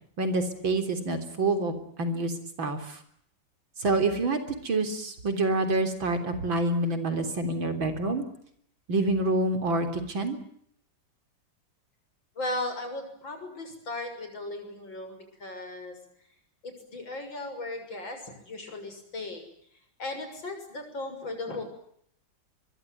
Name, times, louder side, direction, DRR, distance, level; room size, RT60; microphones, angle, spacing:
voice 1, 0.2-2.3 2.6-3.0 3.8-8.3 8.9-10.4, right 2 dB, 85° right, 8 dB, 4.3 m, -27 dB
voice 2, 12.4-16.0 16.6-19.5 20.0-21.6, left 2 dB, 75° left, 6 dB, 7.4 m, -36 dB
23.5 x 23.5 x 9.3 m, 0.68 s
omnidirectional pair, 2.1 m